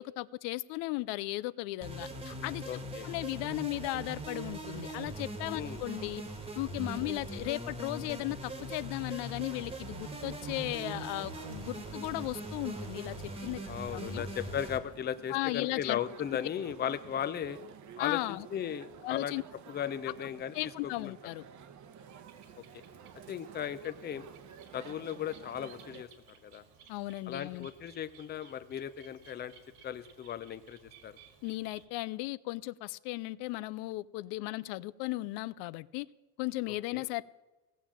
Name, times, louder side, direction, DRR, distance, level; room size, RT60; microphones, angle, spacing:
voice 1, 0.0-6.2 6.6-13.6 13.9-14.2 15.3-16.0 18.0-18.5 19.0-19.4 20.5-21.5 26.9-27.7 31.4-36.1 36.4-37.2, left 20 dB, 85° left, 0.5 m, -36 dB
sound 1, 1.8-14.8, right 1 dB, 15° right, 1.4 m, -41 dB
voice 2, 2.7-3.1 5.5-5.8 7.0-7.4 13.7-17.6 18.0-19.3 19.7-20.5 21.0-21.1 23.3-24.3 24.7-26.1 26.4-26.6 27.3-29.5 29.8-31.2 36.7-37.1, left 9 dB, 25° left, 0.5 m, -37 dB
sound 2, 9.4-26.0, right 8 dB, 45° right, 0.9 m, -52 dB
Bird, 21.8-31.9, right 6 dB, 75° right, 2.1 m, -59 dB
16.5 x 7.2 x 7.3 m
cardioid pair, 140°, 41 cm